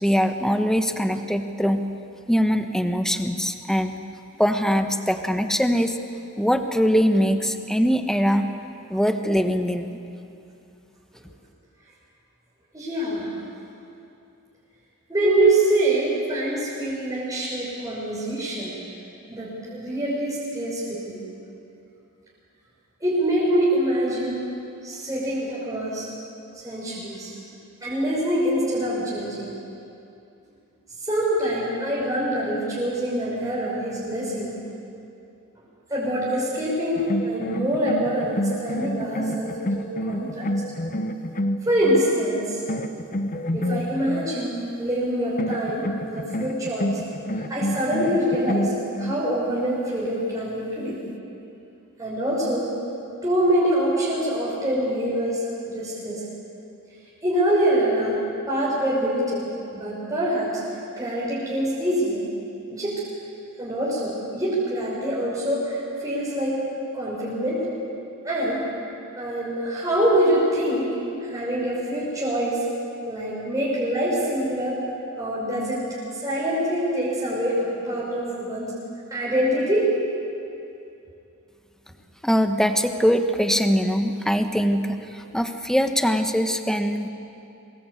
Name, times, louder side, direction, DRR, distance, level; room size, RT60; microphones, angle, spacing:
voice 1, 0.0-1.8 2.3-4.0 4.4-6.0 6.4-8.5 8.9-10.0 82.2-87.1, equal, 5° left, 7 dB, 1.2 m, -22 dB
voice 2, 12.7-13.3 15.1-18.7 19.3-21.2 23.0-24.4 24.8-26.1 26.5-27.3 27.8-29.5 31.0-34.5 35.9-40.5 41.6-42.6 43.5-47.0 47.5-48.7 49.0-51.0 52.0-52.7 53.2-56.2 57.2-58.2 58.5-59.4 59.7-60.6 61.0-62.2 62.7-63.0 63.6-66.6 66.9-67.7 68.2-68.7 69.2-71.0 71.2-72.6 73.1-74.8 75.2-75.8 76.2-78.7 79.1-80.0, right 1 dB, 15° right, -7 dB, 5.7 m, -25 dB
sound 1, 37.0-42.1 42.7-44.3 45.4-49.2, equal, 40° left, 1.0 m, -28 dB
24.5 x 21.0 x 8.5 m, 2.7 s
head